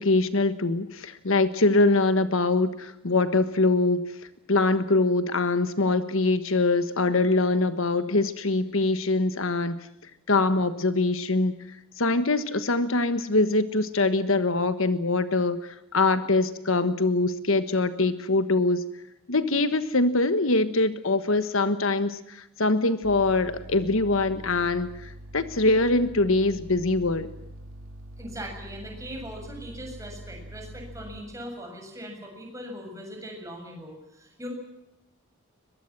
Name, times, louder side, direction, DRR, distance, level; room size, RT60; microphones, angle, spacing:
voice 1, 0.0-4.1 4.5-9.8 10.3-11.5 12.0-18.8 19.3-27.3, left 2 dB, 65° left, 11 dB, 1.4 m, -23 dB
sound 1, 23.0-31.2, equal, 80° right, 3.3 m, -44 dB
voice 2, 28.2-34.5, equal, 15° right, 2 dB, 7.4 m, -40 dB
22.5 x 22.0 x 7.5 m, 0.86 s
head